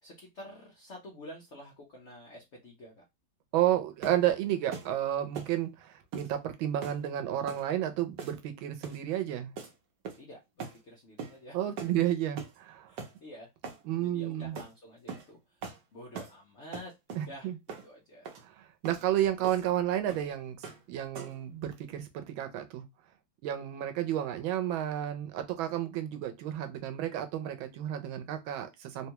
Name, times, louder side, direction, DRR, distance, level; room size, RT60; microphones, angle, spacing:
voice 1, 0.0-3.0 10.2-11.9 12.9-13.5 14.0-15.6 15.9-16.9 17.3-17.5 17.8-18.3, left 1 dB, 60° left, 0.7 m, -49 dB
voice 2, 3.5-9.5 11.5-12.9 13.9-14.6 17.1-17.5 18.4-22.8 23.4-29.1, right 12 dB, 85° right, 1.4 m, -31 dB
sound 1, 4.0-4.3 4.7-4.9 5.3-5.6 6.1-6.3 6.8-7.0 7.5-7.7 8.2-8.5 8.8-9.0 9.6-9.7 10.0-10.3 10.6-10.8 11.2-11.4 11.8-12.0 12.4-12.6 13.0-13.1 13.6-13.8 14.6-14.7 15.1-15.3 15.6-15.8 16.1-16.4 16.7-17.3 17.7-17.9 18.2-18.4 18.8-19.0 19.4-19.7 20.1-20.3 20.6-20.8 21.1-21.4, right 6 dB, 65° right, 1.2 m, -41 dB
3.6 x 2.2 x 2.8 m
omnidirectional pair, 2.1 m